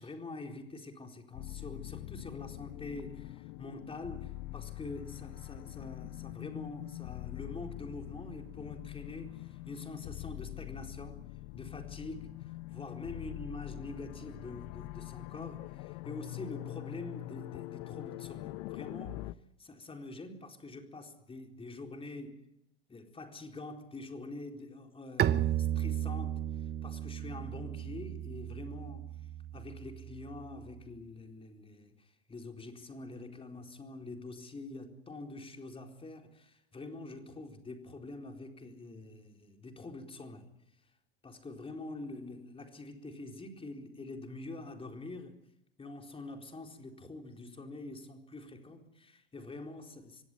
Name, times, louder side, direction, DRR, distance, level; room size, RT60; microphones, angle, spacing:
voice 1, 0.0-11.2 11.5-19.3 19.6-22.5 22.9-26.4 26.8-29.1 29.5-40.5 41.2-45.4 45.8-50.2, left 2 dB, 20° left, 4.2 m, -45 dB
sound 1, 1.3-19.3, left 19 dB, 55° left, 0.9 m, -44 dB
Bowed string instrument, 25.2-30.8, right 11 dB, 35° right, 1.1 m, -34 dB
25.5 x 17.0 x 9.9 m
hypercardioid pair, 80°, 30 cm